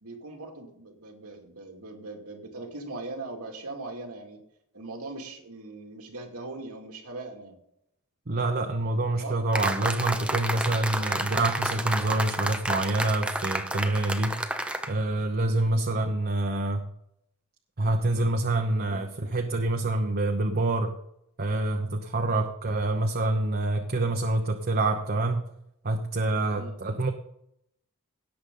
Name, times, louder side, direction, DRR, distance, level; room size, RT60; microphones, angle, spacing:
voice 1, 0.0-4.4 4.7-7.6 9.2-9.4 15.6-16.0 18.9-19.1 22.2-22.5 26.5-26.8, right 2 dB, 90° right, 2 dB, 2.5 m, -40 dB
voice 2, 8.3-14.4 14.9-16.8 17.8-20.9 21.4-25.4 25.8-27.1, right 2 dB, 45° right, 4 dB, 0.9 m, -26 dB
sound 1, 9.5-14.9, right 1 dB, 5° right, 0.8 m, -30 dB
17.5 x 7.2 x 3.9 m, 0.76 s
head